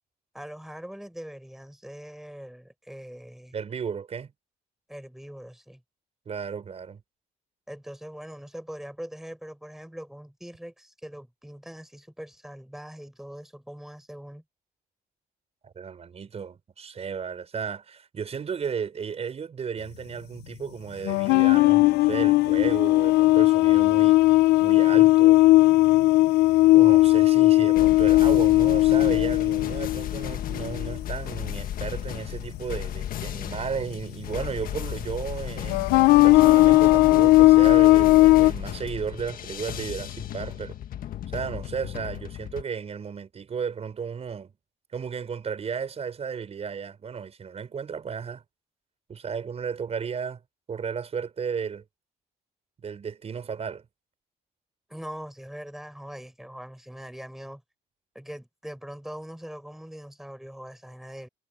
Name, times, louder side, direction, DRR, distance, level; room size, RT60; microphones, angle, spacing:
voice 1, 0.3-3.6 4.9-5.8 7.7-14.4 54.9-57.6 58.1-61.3, equal, ahead, 5.7 m, -42 dB
voice 2, 3.5-4.3 6.3-7.0 15.6-25.4 26.7-40.8 41.3-44.5 44.9-48.4 49.1-50.4 50.7-51.8 52.8-53.9, right 6 dB, 40° right, 5.8 m, -34 dB
sound 1, 21.0-31.0 31.4-31.6 33.2-33.3 34.3-34.4 35.7-38.5, left 18 dB, 90° left, 0.6 m, -18 dB
sound 2, 27.7-42.6, left 10 dB, 60° left, 1.6 m, -35 dB
cardioid pair, 110°, 17 cm